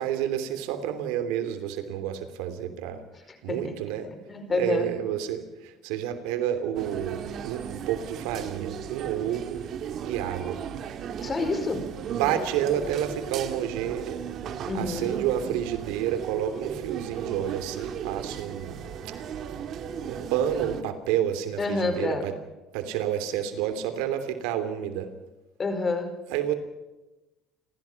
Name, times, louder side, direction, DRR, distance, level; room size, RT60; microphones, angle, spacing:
voice 1, 0.0-3.0 3.4-4.1 4.5-9.6 10.0-10.6 12.1-14.2 14.7-18.9 20.1-22.3 22.7-25.1 26.3-26.5, right 10 dB, 90° right, 9 dB, 3.1 m, -29 dB
voice 2, 3.3-3.8 4.3-4.9 11.2-12.0 14.7-15.2 21.6-22.3 25.6-26.2, left 3 dB, 30° left, 8 dB, 5.0 m, -28 dB
sound 1, 6.7-20.8, right 8 dB, 55° right, 2.2 m, -36 dB
29.5 x 15.0 x 5.9 m, 1.0 s
cardioid pair, 115°, 0 cm